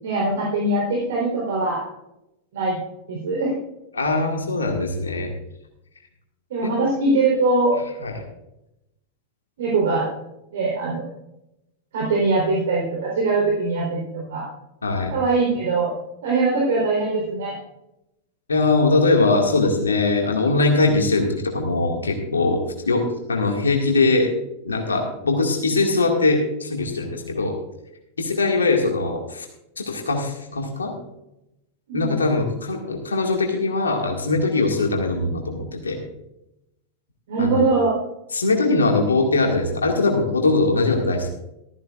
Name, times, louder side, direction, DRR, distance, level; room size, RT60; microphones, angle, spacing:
voice 1, 0.0-1.8 2.5-2.8 3.1-3.6 6.5-7.8 9.6-10.1 10.5-11.0 11.9-14.5 15.1-15.9 16.2-17.6 31.9-32.2 37.3-38.0, right 3 dB, 60° right, -3 dB, 4.1 m, -22 dB
voice 2, 3.9-5.3 6.6-6.7 8.0-8.2 14.8-15.2 18.5-23.0 23.3-24.3 24.6-27.5 28.2-29.5 29.9-30.9 31.9-36.0 37.4-37.6 38.3-41.3, left 3 dB, 75° left, 1 dB, 2.2 m, -21 dB
15.0 x 14.5 x 2.5 m, 0.87 s
figure-of-eight pair, 90°, 0 cm